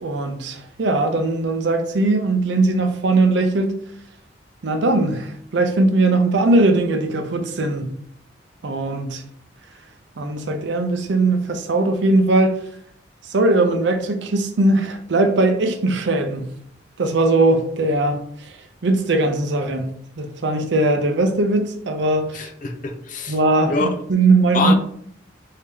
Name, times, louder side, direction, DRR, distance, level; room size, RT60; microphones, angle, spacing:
voice 1, 0.0-3.8 4.6-7.9 8.6-9.2 10.2-12.6 13.3-16.5 17.0-18.2 18.8-19.9 20.2-22.5 23.3-24.7, right 2 dB, 65° right, 0.5 m, -19 dB
voice 2, 22.3-23.4 23.7-23.9 24.5-24.7, left 3 dB, 45° left, 0.4 m, -24 dB
3.4 x 2.7 x 3.4 m
head